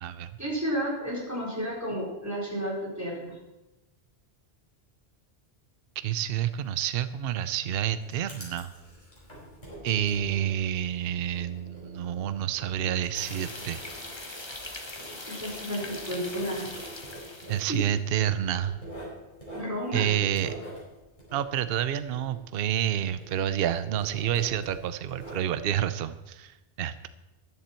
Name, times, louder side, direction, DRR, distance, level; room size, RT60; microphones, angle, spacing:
voice 1, 0.4-3.4 15.3-16.6 19.5-20.1, equal, 15° right, -4 dB, 4.1 m, -32 dB
voice 2, 6.0-8.7 9.8-13.8 17.5-18.8 19.9-20.5 21.3-27.1, right 10 dB, 65° right, 13 dB, 0.8 m, -29 dB
Writing, 7.7-22.9 23.2-25.8, right 1 dB, 45° left, 4.8 m, -46 dB
sound 1, 13.1-17.8, left 2 dB, 25° left, 1.4 m, -41 dB
14.0 x 10.5 x 4.4 m, 1.0 s
omnidirectional pair, 1.1 m